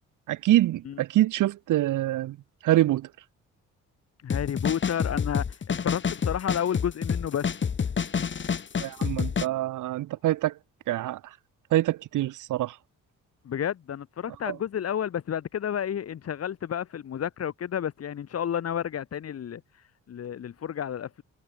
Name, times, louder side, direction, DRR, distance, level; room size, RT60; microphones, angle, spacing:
voice 1, 0.3-2.4 2.6-3.1 8.8-10.5 10.9-11.2 11.7-12.7 14.5-14.6, right 15 dB, 85° right, 3.6 m, -25 dB
voice 2, 4.2-7.5 13.4-21.2, left 9 dB, 55° left, 2.1 m, -31 dB
sound 1, 4.3-9.5, left 6 dB, 40° left, 2.0 m, -28 dB
cardioid pair, 90°, 30 cm